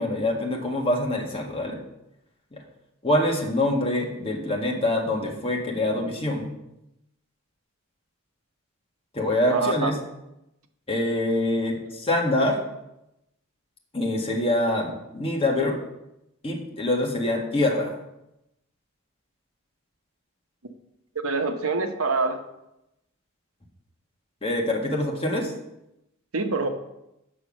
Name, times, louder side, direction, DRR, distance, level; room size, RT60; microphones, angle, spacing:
voice 1, 0.0-1.8 2.5-2.6 3.0-6.5 9.1-10.0 10.9-12.6 13.9-15.8 16.4-17.9 24.4-25.5, left 1 dB, 25° left, -1 dB, 1.7 m, -25 dB
voice 2, 9.5-9.9 11.7-11.8 21.2-22.4 26.3-26.7, right 3 dB, 85° right, 6 dB, 1.1 m, -25 dB
8.7 x 6.3 x 6.2 m, 0.88 s
head